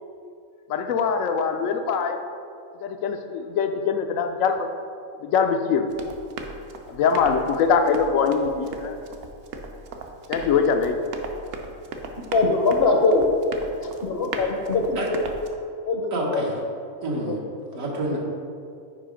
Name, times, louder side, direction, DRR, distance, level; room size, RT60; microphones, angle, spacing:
voice 1, 0.7-2.2 2.8-4.7 5.2-5.9 6.9-9.0 10.3-11.0, left 6 dB, 85° left, 6 dB, 1.0 m, -23 dB
Run, 5.9-15.5, right 3 dB, 60° right, 0.7 m, -37 dB
voice 2, 12.3-13.2 13.8-15.3 15.8-16.4 17.2-17.3, left 3 dB, 60° left, 2 dB, 0.8 m, -22 dB
voice 3, 16.1-16.5 17.0-17.4 17.7-18.2, right 1 dB, 80° right, -2 dB, 1.6 m, -27 dB
5.6 x 4.9 x 5.0 m, 2.4 s
omnidirectional pair, 1.4 m